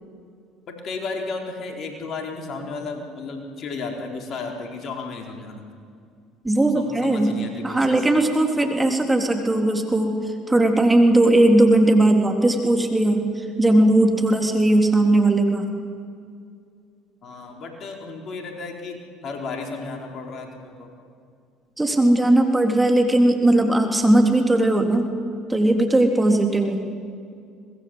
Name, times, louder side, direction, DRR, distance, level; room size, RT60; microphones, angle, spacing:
voice 1, 0.7-5.6 6.6-8.1 17.2-21.0, left 4 dB, 50° left, 2 dB, 4.4 m, -33 dB
voice 2, 6.4-7.3 7.6-10.2 10.5-13.3 13.6-15.7 21.8-25.1 25.5-26.8, right 1 dB, 15° right, 3 dB, 3.5 m, -18 dB
24.0 x 20.5 x 8.1 m, 2.3 s
hypercardioid pair, 65°, 0 cm